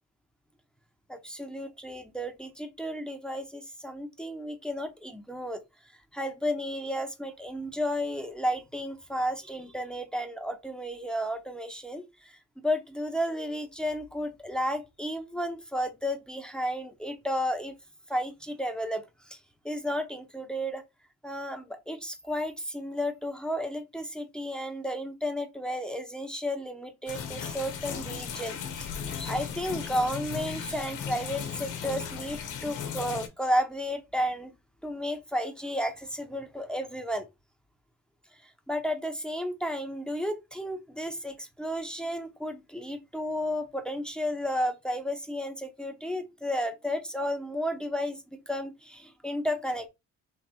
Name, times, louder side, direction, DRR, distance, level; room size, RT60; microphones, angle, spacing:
voice 1, 1.1-5.6 6.1-17.7 18.1-19.4 19.6-20.8 21.2-28.6 29.0-34.5 34.8-37.3 38.4-49.9, equal, 5° left, 0.8 m, -33 dB
sound 1, 27.1-33.3, left 7 dB, 85° left, 1.1 m, -36 dB
3.4 x 3.4 x 4.5 m
cardioid pair, 90°, 30 cm